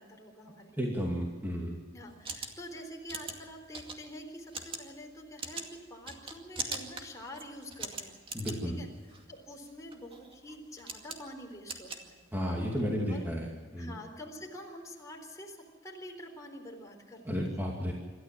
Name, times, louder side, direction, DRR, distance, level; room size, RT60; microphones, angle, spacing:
voice 1, 0.0-0.8 1.9-8.5 8.8-8.9 9.3-12.2 13.1-13.2 13.8-17.4, left 1 dB, 15° left, 0 dB, 3.9 m, -47 dB
voice 2, 0.8-1.8 8.3-8.8 12.3-13.9 17.2-17.9, equal, 10° right, -2 dB, 2.5 m, -33 dB
sound 1, 2.0-12.7, right 4 dB, 30° right, 2.2 m, -43 dB
26.5 x 13.5 x 7.5 m, 1.5 s
head